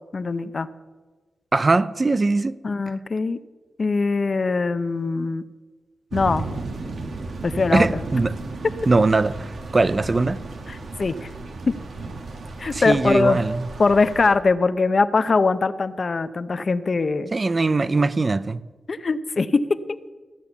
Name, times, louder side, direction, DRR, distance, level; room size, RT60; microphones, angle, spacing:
voice 1, 0.1-0.7 2.6-3.4 3.8-5.5 6.1-6.5 7.4-8.0 10.7-11.3 11.7-11.8 12.6-13.4 13.8-17.3 18.9-19.7, left 4 dB, 50° left, 0.6 m, -22 dB
voice 2, 1.5-2.6 7.7-8.4 8.9-10.4 12.7-13.6 17.3-18.6, right 3 dB, 35° right, 0.5 m, -21 dB
sound 1, 6.1-14.3, right 3 dB, 75° right, 1.3 m, -34 dB
14.5 x 8.3 x 7.0 m
wide cardioid pair, 85°, 0 cm